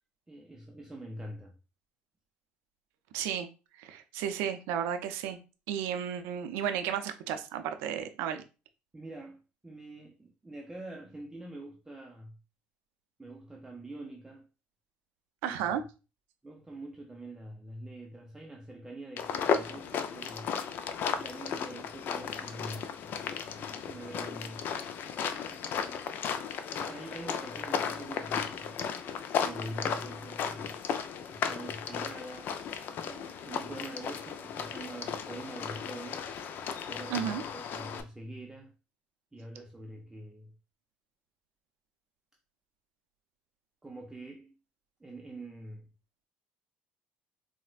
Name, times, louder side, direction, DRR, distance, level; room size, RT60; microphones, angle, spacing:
voice 1, 0.3-1.5 8.9-12.4 13.2-14.5 15.5-15.7 16.4-20.5 21.0-23.1 23.5-24.8 25.5-26.0 26.7-28.8 29.3-30.8 31.3-32.5 33.0-36.2 36.9-38.7 39.3-40.5 43.8-44.5 45.0-45.9, right 1 dB, 10° right, 0.5 m, -45 dB
voice 2, 3.1-3.5 3.8-5.4 5.7-8.4 15.4-15.8 37.1-37.4, right 9 dB, 85° right, 0.4 m, -33 dB
sound 1, 19.2-38.0, left 7 dB, 60° left, 0.4 m, -35 dB
4.1 x 2.1 x 2.3 m
supercardioid pair, 95°, 4 cm